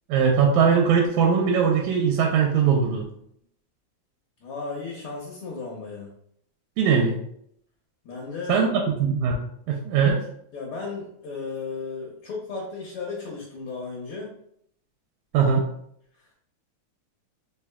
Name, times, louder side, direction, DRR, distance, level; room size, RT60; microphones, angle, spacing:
voice 1, 0.1-3.1 6.8-7.2 8.5-9.4 9.7-10.2 15.3-15.6, right 6 dB, 90° right, 1 dB, 2.0 m, -20 dB
voice 2, 4.4-6.1 8.0-8.7 10.5-14.3, left 4 dB, 70° left, -2 dB, 1.3 m, -34 dB
4.5 x 3.4 x 2.2 m, 0.71 s
omnidirectional pair, 3.3 m